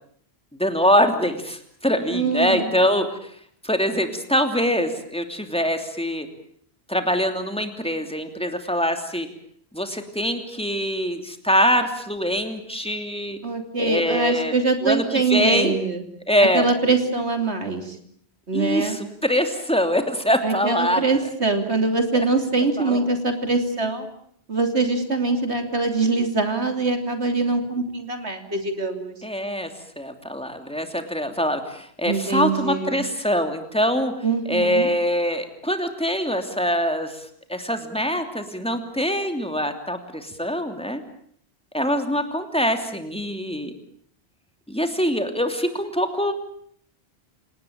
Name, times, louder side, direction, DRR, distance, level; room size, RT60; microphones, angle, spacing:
voice 1, 0.5-3.3 3.6-6.3 6.9-9.3 9.7-13.4 13.8-14.5 14.8-15.0 15.3-15.7 16.3-16.6 18.5-21.0 22.8-23.2 29.2-29.7 30.0-34.1 34.5-41.0 41.7-43.7 44.7-46.3, equal, 5° left, 6 dB, 3.0 m, -24 dB
voice 2, 2.1-2.7 13.4-16.0 16.4-18.0 18.5-19.0 20.4-24.1 24.5-29.2 32.0-33.0 34.2-34.9, right 3 dB, 85° right, 6 dB, 3.4 m, -23 dB
29.0 x 18.5 x 8.7 m, 0.64 s
omnidirectional pair, 1.1 m